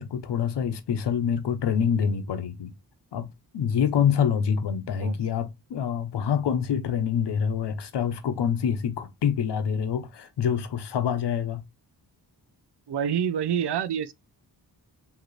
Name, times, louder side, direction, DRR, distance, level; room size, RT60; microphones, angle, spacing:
voice 1, 0.0-2.7 3.1-3.3 3.5-11.6, left 8 dB, 90° left, 0.9 m, -26 dB
voice 2, 12.9-14.1, right 8 dB, 80° right, 0.6 m, -27 dB
4.9 x 2.9 x 3.2 m
wide cardioid pair, 125°, 40 cm